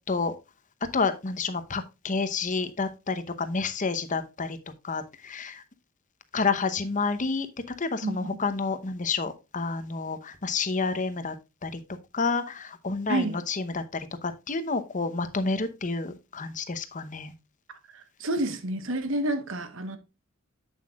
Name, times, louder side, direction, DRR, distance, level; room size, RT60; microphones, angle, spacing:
voice 1, 0.9-4.6 4.8-5.6 6.3-7.5 7.8-11.3 11.6-11.8 12.1-17.3, left 4 dB, 40° left, 0.9 m, -29 dB
voice 2, 17.9-20.0, right 1 dB, 65° right, 1.3 m, -29 dB
8.2 x 7.5 x 2.4 m
head